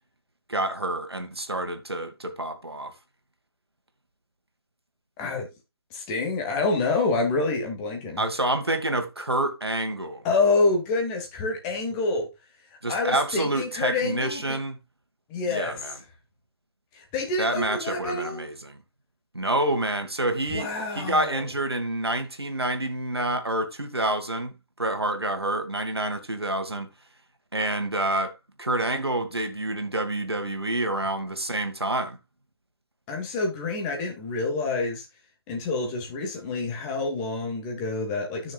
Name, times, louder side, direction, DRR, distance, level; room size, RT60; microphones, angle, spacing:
voice 1, 0.5-2.9 8.2-10.2 12.8-14.8 15.4-16.0 17.4-18.8 19.3-26.9 27.5-28.3 28.6-32.2, right 1 dB, 85° right, 2.0 m, -28 dB
voice 2, 5.2-5.5 5.9-8.2 10.2-12.3 12.9-14.6 15.3-15.8 16.9-18.4 20.5-21.4 33.1-35.0 35.5-38.5, left 3 dB, 15° left, 2.1 m, -27 dB
13.5 x 6.2 x 2.4 m
figure-of-eight pair, 150°, 13 cm